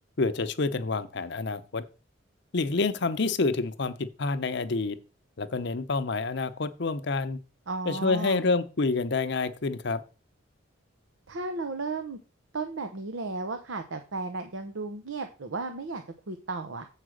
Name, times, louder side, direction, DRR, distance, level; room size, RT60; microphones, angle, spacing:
voice 1, 0.2-1.8 2.5-5.0 5.4-7.4 7.9-10.0, left 3 dB, 60° left, 12 dB, 0.7 m, -28 dB
voice 2, 7.7-8.4 11.3-12.2 12.5-16.9, right 3 dB, 80° right, 7 dB, 0.8 m, -34 dB
7.4 x 4.9 x 6.3 m, 0.34 s
head